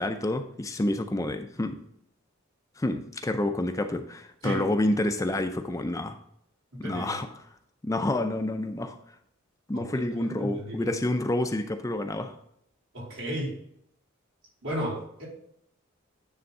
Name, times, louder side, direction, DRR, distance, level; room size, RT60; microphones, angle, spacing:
voice 1, 0.0-1.8 2.8-6.2 6.8-7.3 7.8-9.0 9.7-12.3, left 1 dB, 15° left, 7 dB, 0.4 m, -28 dB
voice 2, 6.8-7.2 9.7-10.9 12.9-13.6 14.6-15.3, equal, 75° right, -4 dB, 3.4 m, -34 dB
9.5 x 3.4 x 5.3 m, 0.71 s
head